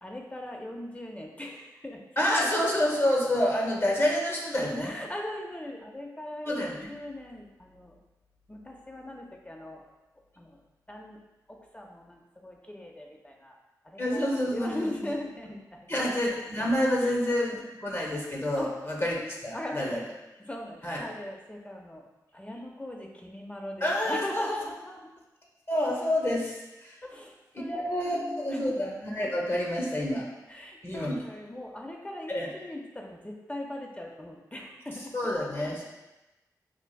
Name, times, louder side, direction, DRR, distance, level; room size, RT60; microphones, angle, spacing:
voice 1, 0.0-2.0 4.8-6.6 6.9-8.0 8.5-9.9 10.4-10.6 10.9-11.2 11.5-13.6 13.8-16.1 17.0-17.1 18.6-18.7 19.5-20.0 20.4-22.0 22.3-25.0 27.0-28.8 30.5-35.1, left 1 dB, 20° left, 1 dB, 0.5 m, -39 dB
voice 2, 2.2-4.9 6.4-6.9 14.0-15.1 15.9-19.2 19.4-20.0 20.8-21.1 23.8-24.5 25.7-27.0 27.5-30.3 30.8-31.2 32.3-32.5 35.1-35.9, left 1 dB, 35° left, -2 dB, 0.9 m, -28 dB
4.5 x 2.4 x 2.3 m, 1.0 s
cardioid pair, 55°, 7 cm